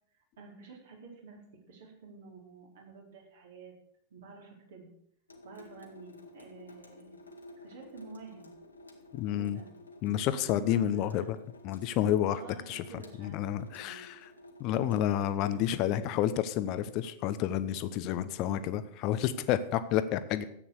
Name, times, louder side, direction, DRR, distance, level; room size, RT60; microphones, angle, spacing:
voice 1, 0.4-3.7 4.1-4.9 5.4-7.2 7.6-8.5 9.4-9.7 10.1-11.2 12.3-14.0 15.4-15.6 18.1-18.7, right 4 dB, 60° right, 0 dB, 4.3 m, -50 dB
Water tap faucet / Sink (filling or washing) / Drip, 5.3-16.1, left 2 dB, 80° left, 2.0 m, -53 dB
voice 2, 9.1-9.6 10.0-11.4 11.6-12.4 12.7-12.8 13.2-14.3 14.6-20.4, left 11 dB, 40° left, 13 dB, 1.0 m, -30 dB
13.5 x 9.0 x 6.7 m, 0.69 s
figure-of-eight pair, 90°, 0 cm